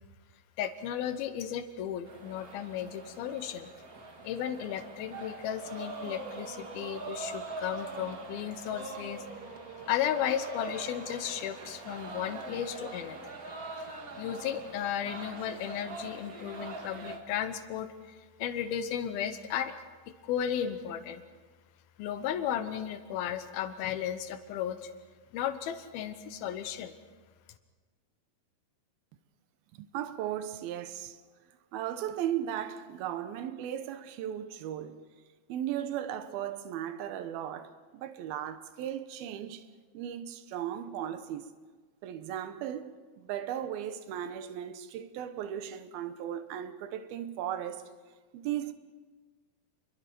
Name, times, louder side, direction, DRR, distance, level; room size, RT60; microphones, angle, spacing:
voice 1, 0.6-3.7 4.2-9.3 9.9-13.4 14.2-19.7 20.1-21.2 22.0-24.9 25.3-26.9, left 9 dB, 85° left, 2.9 m, -34 dB
sound 1, 2.0-17.2, right 3 dB, 40° right, 1.4 m, -43 dB
voice 2, 29.8-31.2 31.7-35.1 35.5-39.7 39.9-41.5 42.0-47.9 48.3-48.7, right 10 dB, 80° right, 2.9 m, -36 dB
28.5 x 23.0 x 4.5 m
omnidirectional pair, 4.2 m